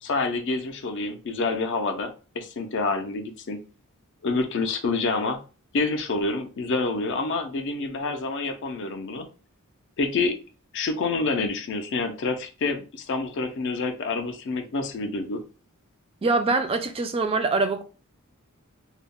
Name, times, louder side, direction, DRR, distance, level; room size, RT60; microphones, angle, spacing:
voice 1, 0.0-3.6 4.2-5.4 5.7-9.3 10.0-10.4 10.7-15.4, left 3 dB, 55° left, 0.4 m, -27 dB
voice 2, 16.2-17.8, right 3 dB, 25° right, 0.3 m, -24 dB
2.2 x 2.0 x 3.5 m
head